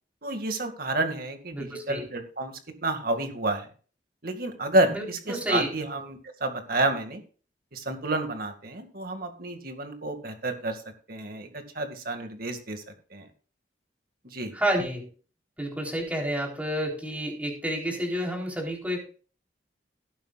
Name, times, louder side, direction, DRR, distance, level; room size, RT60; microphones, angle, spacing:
voice 1, 0.2-2.5 2.8-3.7 4.2-7.2 7.7-10.8 11.1-12.8 13.1-13.3 14.3-14.5, right 2 dB, 55° right, 6 dB, 2.2 m, -29 dB
voice 2, 1.5-2.0 4.9-5.7 14.5-15.0 15.6-19.0, equal, 10° right, 0 dB, 3.8 m, -29 dB
18.0 x 9.1 x 2.5 m, 0.39 s
head